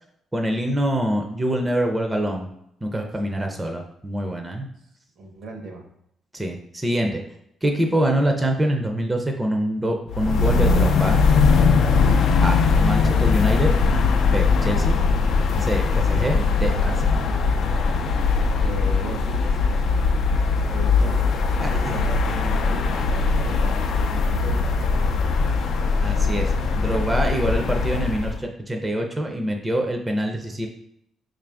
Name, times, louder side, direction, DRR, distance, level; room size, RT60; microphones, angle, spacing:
voice 1, 0.3-2.5 2.8-4.7 6.3-7.2 7.6-11.2 12.4-13.7 14.3-15.0 15.6-17.3 21.6-21.7 26.0-30.7, right 1 dB, 15° right, 2 dB, 0.5 m, -25 dB
voice 2, 3.0-3.8 5.2-5.9 15.9-16.1 17.3-17.6 18.6-20.2 20.7-25.5, right 2 dB, 70° right, 2 dB, 0.8 m, -38 dB
sound 1, 10.1-28.4, left 4 dB, 70° left, 0.3 m, -20 dB
3.8 x 2.5 x 3.4 m, 0.76 s
cardioid pair, 90°, 0 cm